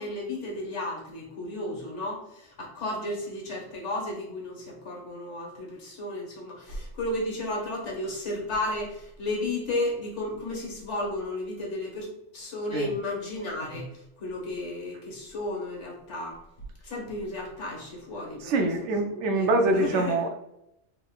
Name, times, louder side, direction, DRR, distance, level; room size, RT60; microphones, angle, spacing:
voice 1, 0.0-12.1 12.3-16.4 16.8-18.6 18.9-19.0 19.4-20.1, left 2 dB, 85° left, -2 dB, 1.5 m, -33 dB
voice 2, 18.4-20.3, right 2 dB, 80° right, 4 dB, 1.0 m, -24 dB
3.7 x 3.6 x 2.3 m, 0.82 s
omnidirectional pair, 1.2 m